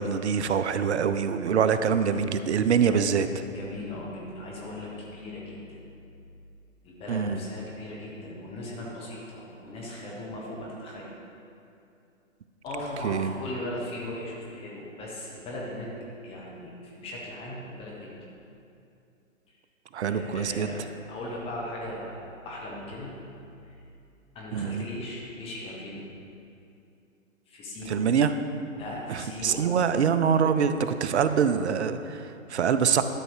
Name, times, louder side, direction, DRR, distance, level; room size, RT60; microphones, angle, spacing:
voice 1, 0.0-3.3 7.1-7.4 13.0-13.3 19.9-20.7 24.5-24.9 27.9-28.3 29.1-33.0, right 7 dB, 55° right, 11 dB, 0.6 m, -24 dB
voice 2, 1.8-2.2 2.7-3.0 3.5-5.8 6.8-11.1 12.6-15.9 16.2-16.7 17.0-18.3 20.1-20.8 21.1-23.1 23.6-23.8 24.3-26.0 27.5-28.0 28.8-29.7, left 1 dB, 15° left, -4 dB, 1.2 m, -38 dB
12.0 x 6.4 x 4.7 m, 2.6 s
figure-of-eight pair, 135°, 41 cm